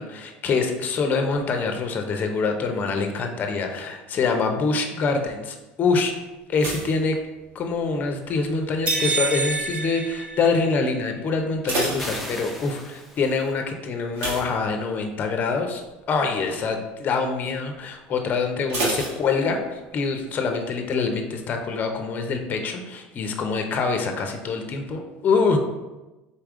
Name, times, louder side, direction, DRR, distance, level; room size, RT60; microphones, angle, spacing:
voice 1, 0.0-6.1 6.5-7.2 7.5-15.8 16.1-25.6, left 4 dB, 40° left, 4 dB, 0.7 m, -25 dB
sound 1, 6.5-8.0 8.3-8.8 9.4-9.8 10.1-10.2 10.6-10.7 11.3-12.8 14.1-15.3 15.6-15.9 16.3-16.4 18.7-19.9 20.2-20.3, right 2 dB, 60° right, 1.6 m, -30 dB
sound 2, 8.9-11.0, right 3 dB, 30° right, 1.2 m, -27 dB
sound 3, 12.0-13.6, equal, ahead, 0.7 m, -37 dB
4.2 x 3.4 x 3.7 m, 1.1 s
supercardioid pair, 105°, 5 cm